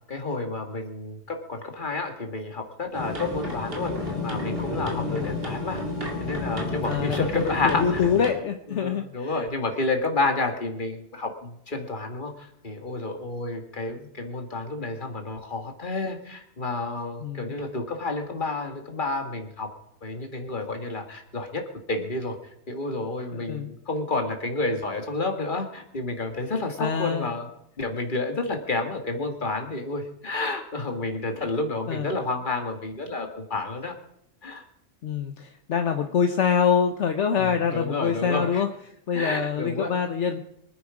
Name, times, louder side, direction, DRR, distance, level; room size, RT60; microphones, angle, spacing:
voice 1, 0.1-3.9 4.2-5.8 6.2-8.1 8.7-19.7 20.0-22.4 22.7-27.5 27.8-33.9 34.4-34.6 37.4-38.6 39.1-39.9, left 2 dB, 40° left, 4 dB, 2.1 m, -30 dB
sound 1, 2.9-8.3, left 2 dB, 50° right, 3.0 m, -31 dB
voice 2, 4.9-5.5 6.9-9.4 17.2-17.5 23.5-23.7 26.8-27.3 31.9-32.1 35.0-38.7 39.1-40.4, left 7 dB, 70° left, 7 dB, 1.3 m, -25 dB
25.0 x 9.7 x 5.0 m, 0.75 s
omnidirectional pair, 1.3 m